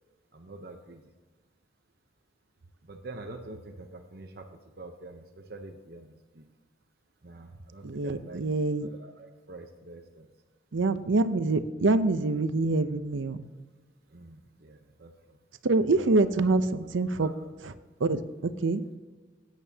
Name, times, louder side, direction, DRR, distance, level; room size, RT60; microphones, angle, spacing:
voice 1, 0.3-1.0 2.8-4.5 4.8-6.5 7.2-8.4 8.8-10.3 14.1-15.4 16.0-16.3 17.2-17.5, right 2 dB, 55° right, 2 dB, 0.8 m, -46 dB
voice 2, 7.8-8.9 10.7-13.4 15.6-17.3 18.0-18.8, right 3 dB, 90° right, 12 dB, 0.6 m, -25 dB
14.0 x 9.1 x 2.8 m, 1.3 s
head